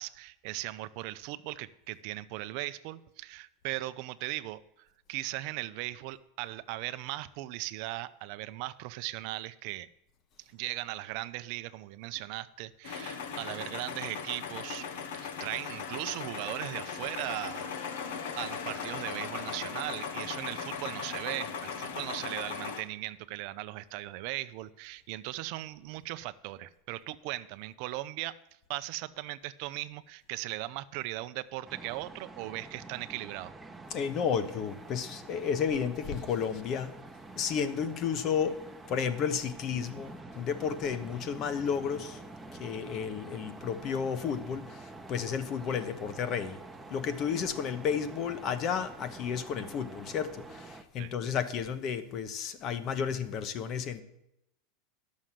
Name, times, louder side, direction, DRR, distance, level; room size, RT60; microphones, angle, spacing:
voice 1, 0.0-4.6 5.1-9.9 10.5-14.9 15.1-17.7 18.0-18.1 18.4-28.4 28.7-33.5 51.0-51.1, right 17 dB, 60° right, 0.5 m, -38 dB
sound 1, 12.8-22.8, left 6 dB, 80° left, 1.2 m, -38 dB
sound 2, 31.7-50.8, right 2 dB, 10° right, 0.9 m, -47 dB
voice 2, 33.9-36.9 37.4-38.6 38.9-42.2 42.6-46.6 46.9-54.0, left 7 dB, 40° left, 1.1 m, -32 dB
11.5 x 6.4 x 7.5 m
supercardioid pair, 135°, 0 cm